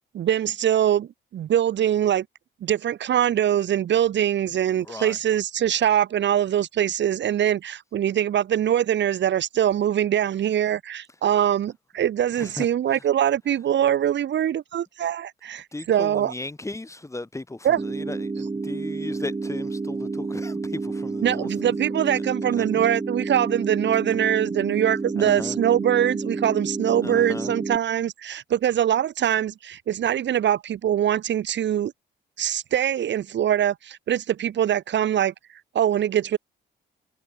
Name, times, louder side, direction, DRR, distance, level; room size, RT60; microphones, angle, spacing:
voice 1, 0.1-2.2 2.6-16.3 17.6-17.8 21.2-31.9 32.4-35.3 35.7-36.4, right 10 dB, 65° right, 2.3 m, -23 dB
voice 2, 4.8-5.2 12.3-13.1 15.7-21.5 22.6-22.9 25.2-25.6 27.0-27.5, left 2 dB, 15° left, 5.8 m, -36 dB
sound 1, 17.8-27.8, right 3 dB, 25° right, 5.6 m, -30 dB
cardioid pair, 90°, 20 cm